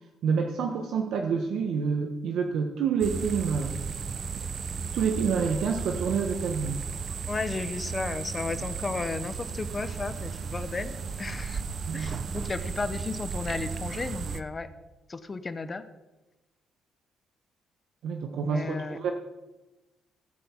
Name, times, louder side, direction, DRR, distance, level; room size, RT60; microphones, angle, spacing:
voice 1, 0.2-3.9 4.9-6.8 11.9-12.1 18.0-19.1, right 6 dB, 75° right, 3 dB, 1.3 m, -28 dB
sound 1, 3.0-14.4, right 5 dB, 55° right, 0.8 m, -35 dB
voice 2, 7.3-11.6 11.9-14.7 15.1-15.9 18.4-19.0, left 3 dB, 30° left, 11 dB, 0.9 m, -34 dB
17.0 x 5.9 x 7.3 m, 1.1 s
cardioid pair, 90°, 0 cm